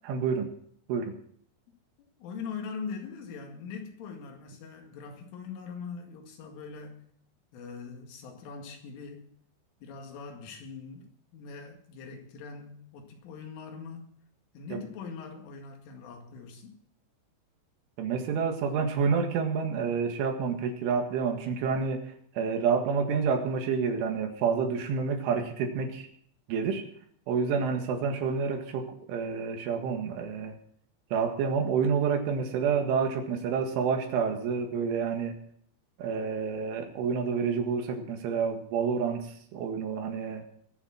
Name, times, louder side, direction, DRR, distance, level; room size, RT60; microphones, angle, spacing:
voice 1, 0.1-0.5 0.9-1.2 14.7-14.8 18.0-26.1 26.5-26.8 27.3-30.6 31.1-35.4 36.0-40.4, right 6 dB, 80° right, 4 dB, 4.2 m, -29 dB
voice 2, 1.7-7.0 7.5-9.3 9.8-14.1 14.5-16.8, left 5 dB, 80° left, 3 dB, 4.6 m, -42 dB
22.0 x 7.4 x 5.9 m, 0.63 s
omnidirectional pair, 5.6 m